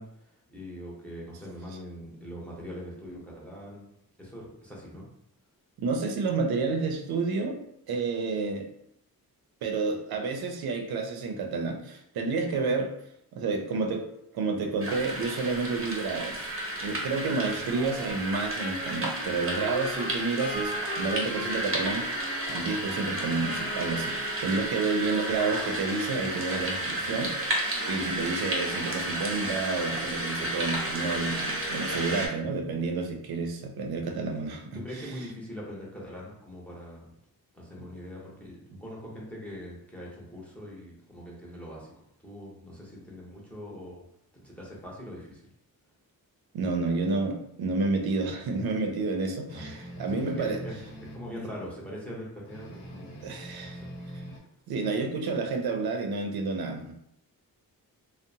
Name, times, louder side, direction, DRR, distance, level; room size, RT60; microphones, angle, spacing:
voice 1, 0.0-3.8 4.2-5.1 26.8-27.1 28.0-28.1 32.0-32.2 34.0-34.4 34.7-37.1 37.5-41.9 42.2-44.0 44.4-45.4 49.5-49.7 50.1-50.8 51.1-53.3 53.6-53.9, equal, 5° left, -5 dB, 0.7 m, -42 dB
voice 2, 5.8-7.6 7.9-8.7 9.6-12.9 13.3-14.1 14.3-16.5 16.8-35.1 46.5-50.6 53.2-53.8 54.7-56.9, right 3 dB, 80° right, 4 dB, 0.5 m, -30 dB
sound 1, 14.8-32.3, right 1 dB, 35° right, 0.6 m, -32 dB
Wind instrument woodwind instrument, 17.2-24.9, left 1 dB, 45° left, 0.7 m, -40 dB
sound 2, 49.5-51.3 52.5-54.4, equal, 90° left, 0.7 m, -42 dB
2.7 x 2.0 x 2.6 m, 0.75 s
wide cardioid pair, 125°, 36 cm